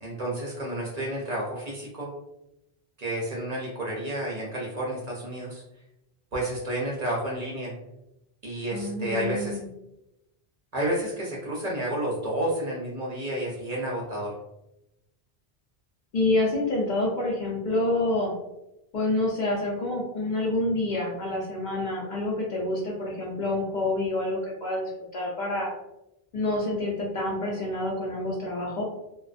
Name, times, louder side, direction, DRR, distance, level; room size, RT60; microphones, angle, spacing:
voice 1, 0.0-2.1 3.0-5.6 6.3-7.7 8.4-9.6 10.7-14.3, right 1 dB, 50° right, -4 dB, 0.6 m, -30 dB
voice 2, 8.7-9.6 16.1-18.3 18.9-25.7 26.3-28.8, left 2 dB, 55° left, -3 dB, 0.6 m, -27 dB
2.4 x 2.2 x 2.4 m, 0.89 s
omnidirectional pair, 1.1 m